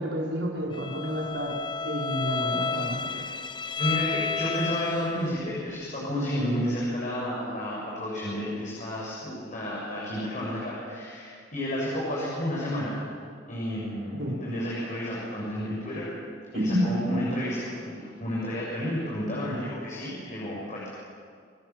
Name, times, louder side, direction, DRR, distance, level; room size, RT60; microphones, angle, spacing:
voice 1, 0.0-3.2 14.2-14.3 16.5-16.9, equal, 75° right, -1 dB, 4.9 m, -29 dB
Bowed string instrument, 0.7-5.4, left 5 dB, 25° left, 0.7 m, -31 dB
voice 2, 3.8-13.0 13.5-16.1 16.5-20.9, equal, 45° left, -5 dB, 7.3 m, -31 dB
29.0 x 22.0 x 7.4 m, 2.1 s
head